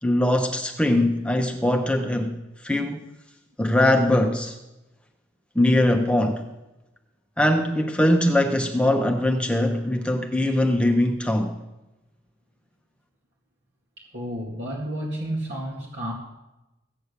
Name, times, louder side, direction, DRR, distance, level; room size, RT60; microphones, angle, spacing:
voice 1, 0.0-2.4 2.6-3.0 3.6-4.6 5.5-6.4 7.4-11.6, left 1 dB, 5° left, 4 dB, 0.8 m, -21 dB
voice 2, 14.0-16.1, right 1 dB, 70° right, -2 dB, 2.1 m, -31 dB
16.0 x 8.6 x 6.7 m, 1.0 s
head